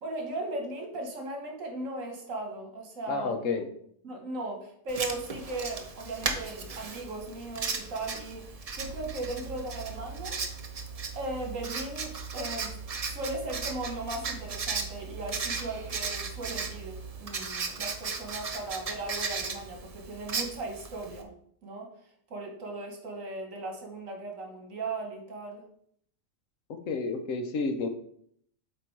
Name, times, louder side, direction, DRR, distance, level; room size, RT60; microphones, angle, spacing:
voice 1, 0.0-3.6 4.0-10.4 11.1-12.8 13.0-21.3 21.6-21.9 22.3-25.6, right 2 dB, 75° right, 2 dB, 1.6 m, -37 dB
voice 2, 3.1-3.7 26.9-27.9, left 4 dB, 70° left, 7 dB, 1.1 m, -30 dB
Writing, 4.9-21.2, right 4 dB, 45° right, 0.5 m, -36 dB
sound 1, 8.7-17.4, right 6 dB, 90° right, 1.0 m, -43 dB
7.8 x 3.0 x 4.5 m, 0.66 s
omnidirectional pair, 1.4 m